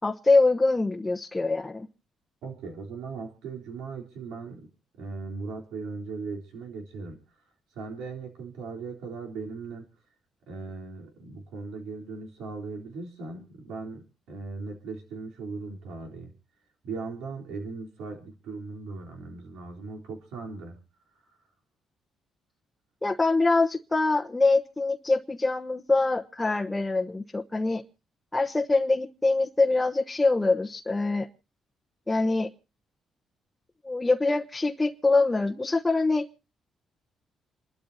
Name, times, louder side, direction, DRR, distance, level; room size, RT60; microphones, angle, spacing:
voice 1, 0.0-1.9 23.0-27.8 28.3-31.3 32.1-32.5 33.8-36.3, left 3 dB, 15° left, 2 dB, 1.1 m, -24 dB
voice 2, 2.4-4.7 5.0-7.4 7.7-9.9 10.5-16.3 16.8-20.8 21.1-21.4, right 4 dB, 90° right, 1 dB, 3.8 m, -38 dB
28.5 x 12.5 x 2.8 m, 0.33 s
cardioid pair, 90°, 0 cm